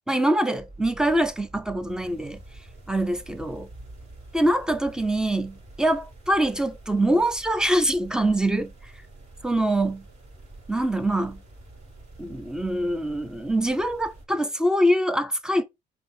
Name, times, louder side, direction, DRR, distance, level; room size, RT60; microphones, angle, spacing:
voice 1, 0.1-2.4 2.9-3.7 4.3-8.7 9.4-10.0 10.7-11.4 12.2-15.6, right 1 dB, 5° right, 0.5 m, -24 dB
sound 1, 0.6-14.2, right 2 dB, 40° right, 2.1 m, -47 dB
4.4 x 2.7 x 3.3 m
cardioid pair, 110°, 17 cm